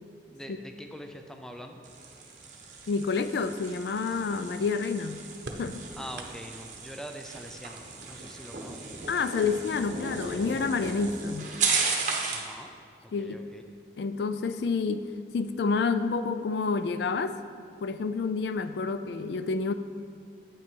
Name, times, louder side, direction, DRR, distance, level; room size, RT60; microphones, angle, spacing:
voice 1, 0.3-1.8 6.0-7.8 8.1-8.8 12.3-12.7 13.0-13.7, equal, 5° left, 5 dB, 0.4 m, -43 dB
sound 1, 1.8-12.5, right 4 dB, 45° right, 1.0 m, -35 dB
voice 2, 2.9-5.2 5.6-5.8 9.1-11.5 13.1-13.4 14.0-15.0 15.3-17.4 17.8-19.7, left 4 dB, 65° left, 11 dB, 0.3 m, -29 dB
sound 2, 5.4-6.8 7.4-8.5 9.6-9.7 10.7-10.8 11.2-11.7, right 2 dB, 75° right, 0.7 m, -45 dB
8.5 x 5.9 x 4.5 m, 2.3 s
head